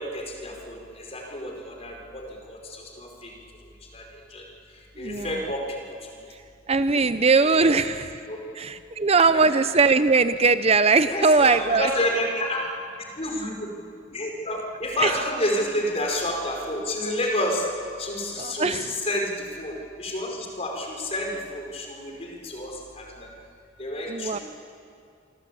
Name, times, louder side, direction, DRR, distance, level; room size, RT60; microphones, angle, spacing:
voice 1, 0.0-3.3 3.9-4.0 4.3-4.4 5.0-5.8 6.9-7.0 7.4-7.9 8.3-8.4 9.3-9.6 11.0-12.7 13.2-13.7 14.1-17.7 18.0-23.3 23.8-24.4, left 1 dB, 35° left, 1 dB, 4.9 m, -30 dB
voice 2, 5.0-5.4 6.7-8.1 8.6-11.9 15.0-15.1 18.4-18.8 24.1-24.4, right 4 dB, 35° right, 12 dB, 0.7 m, -20 dB
27.0 x 24.0 x 8.6 m, 2.4 s
head